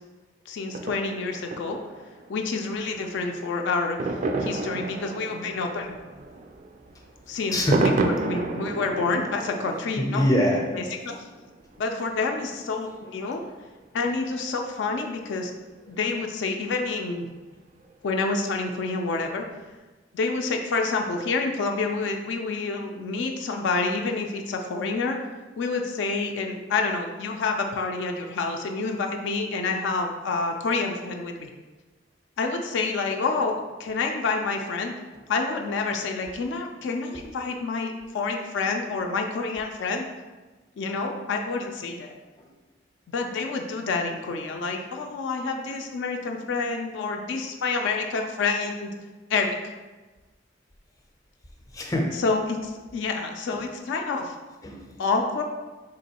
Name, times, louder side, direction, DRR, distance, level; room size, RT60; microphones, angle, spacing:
voice 1, 0.5-1.8 2.3-4.0 4.4-6.0 7.3-10.3 10.7-11.3 11.8-13.4 13.9-15.5 15.9-17.3 18.0-19.5 20.1-25.2 25.6-31.5 32.4-34.9 35.3-40.1 40.8-42.1 43.1-48.9 49.3-49.6 52.2-54.4 55.0-55.4, left 4 dB, 70° left, 3 dB, 0.3 m, -28 dB
sound 1, 0.7-13.4 13.8-13.9 14.1-14.2 14.4-14.5 14.9-15.0 15.9-16.0 16.4-16.5 17.8-18.2 18.5-18.6 19.0-19.1 19.4-19.5, right 2 dB, 45° right, 0.3 m, -31 dB
voice 2, 7.3-7.8 10.0-10.6 42.4-42.5 51.7-52.1 54.6-55.0, equal, 20° left, 0 dB, 0.5 m, -24 dB
3.8 x 2.9 x 2.8 m, 1.3 s
head